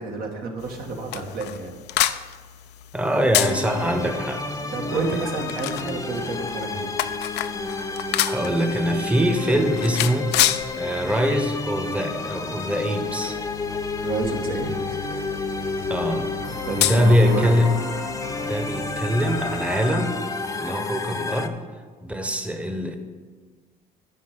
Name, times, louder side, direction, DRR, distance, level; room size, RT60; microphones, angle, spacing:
voice 1, 0.0-1.7 4.7-7.0 14.0-15.0 16.7-17.6, right 3 dB, 60° right, 2 dB, 1.8 m, -29 dB
sound 1, 0.6-19.9, left 13 dB, 80° left, 0.5 m, -31 dB
voice 2, 2.9-4.4 4.9-5.2 8.2-10.3 10.7-13.4 15.9-16.3 16.8-17.7 18.4-20.2 20.6-21.6 22.0-23.0, equal, 5° right, 5 dB, 1.1 m, -23 dB
sound 2, 3.4-21.5, left 3 dB, 20° left, 0.8 m, -30 dB
Nightly Dutch Traffic with Tire Squeaking, 5.3-10.3 10.6-10.8 11.5-19.0, right 2 dB, 40° right, 1.7 m, -45 dB
9.9 x 5.3 x 6.7 m, 1.5 s
cardioid pair, 110°, 17 cm